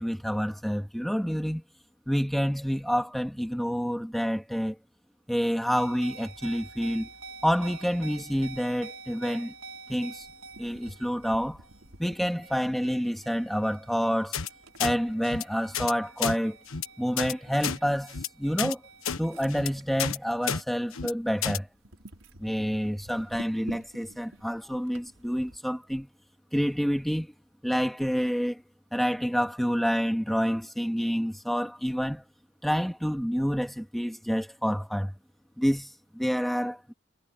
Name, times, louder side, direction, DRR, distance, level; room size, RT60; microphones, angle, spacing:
voice 1, 0.0-1.6 2.1-4.8 5.3-7.1 7.4-9.5 9.9-10.3 10.6-11.6 12.0-14.4 14.8-16.6 17.0-18.8 19.2-21.7 22.4-26.1 26.5-27.3 27.6-28.6 28.9-32.2 32.6-35.2 35.6-36.9, equal, ahead, 2.0 m, -28 dB
sound 1, 5.8-20.5 20.9-21.2 21.7-25.6, right 3 dB, 75° right, 5.3 m, -48 dB
sound 2, 14.3-14.5 14.8-14.9 15.2-15.4 15.7-15.9 16.2-16.4 16.7-16.9 17.2-17.3 17.6-17.8 18.1-18.3 18.6-18.7 19.0-19.2 19.5-19.7 20.0-20.2 20.5-20.6 20.9-21.1 21.4-21.6, left 7 dB, 80° left, 1.3 m, -30 dB
head